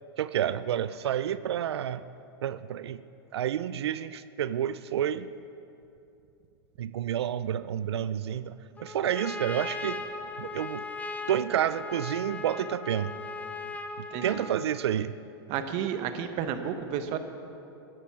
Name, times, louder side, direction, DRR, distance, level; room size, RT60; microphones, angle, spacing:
voice 1, 0.2-2.0 2.4-3.0 3.3-5.3 6.8-10.0 10.4-10.9 11.3-13.1 14.2-15.2, right 10 dB, 85° right, 15 dB, 0.4 m, -29 dB
Trumpet, 8.8-14.8, left 3 dB, 10° left, 0.8 m, -38 dB
voice 2, 14.1-14.4 15.5-17.2, right 8 dB, 50° right, 8 dB, 1.1 m, -32 dB
12.5 x 11.5 x 5.8 m, 2.7 s
hypercardioid pair, 110°, 13 cm